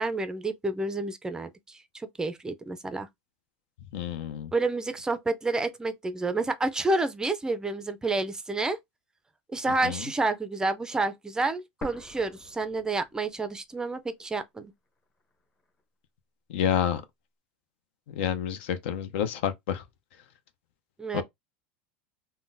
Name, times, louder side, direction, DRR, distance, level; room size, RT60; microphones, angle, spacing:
voice 1, 0.0-3.1 4.5-8.8 9.5-14.7 21.0-21.2, right 2 dB, 10° right, 0.4 m, -29 dB
voice 2, 3.9-4.5 9.8-10.1 16.5-17.0 18.1-19.8 21.1-21.2, left 9 dB, 75° left, 0.6 m, -29 dB
sound 1, 11.8-13.7 14.0-14.1 14.8-15.8, left 2 dB, 20° left, 0.8 m, -45 dB
3.7 x 2.1 x 2.6 m
supercardioid pair, 125°, 6 cm